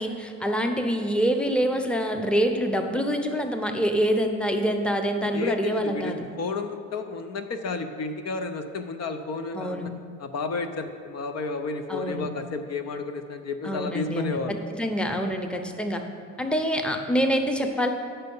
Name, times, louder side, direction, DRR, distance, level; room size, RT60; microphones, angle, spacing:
voice 1, 0.0-6.2 9.5-9.9 11.9-12.3 13.6-14.4 14.7-16.0 16.4-17.9, equal, 5° left, 5 dB, 0.7 m, -26 dB
voice 2, 5.3-9.9 10.2-14.6, left 4 dB, 55° left, 8 dB, 0.6 m, -32 dB
8.9 x 5.6 x 5.4 m, 2.3 s
cardioid pair, 90°, 30 cm